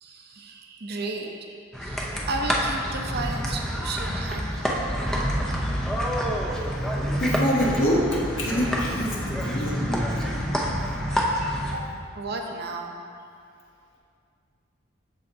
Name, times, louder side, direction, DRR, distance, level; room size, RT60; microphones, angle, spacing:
voice 1, 0.0-4.7 11.1-11.9 12.2-12.9, right 3 dB, 55° right, 2 dB, 0.7 m, -34 dB
sound 1, 1.7-11.8, equal, 5° left, 0.6 m, -27 dB
voice 2, 6.8-10.3 10.8-11.0, equal, 80° left, -4 dB, 1.5 m, -26 dB
13.5 x 4.4 x 2.7 m, 2.3 s
head